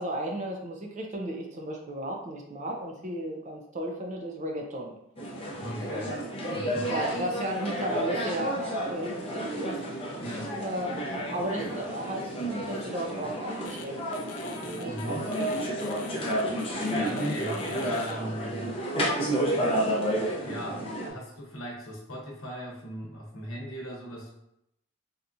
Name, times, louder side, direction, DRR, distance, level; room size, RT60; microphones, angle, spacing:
voice 1, 0.0-5.0 5.9-6.2 6.9-9.8 10.6-14.3 14.8-15.5, right 1 dB, 35° right, 1 dB, 0.5 m, -34 dB
sound 1, 5.2-21.1, equal, 25° left, 0.6 m, -31 dB
voice 2, 5.5-6.1 6.5-7.2 10.2-10.5 14.8-15.3 16.9-18.7 20.4-24.3, equal, 65° left, -2 dB, 1.0 m, -38 dB
sound 2, 13.6-13.8 14.1-18.1, left 5 dB, 80° left, 0.5 m, -46 dB
4.2 x 2.4 x 2.6 m, 0.80 s
head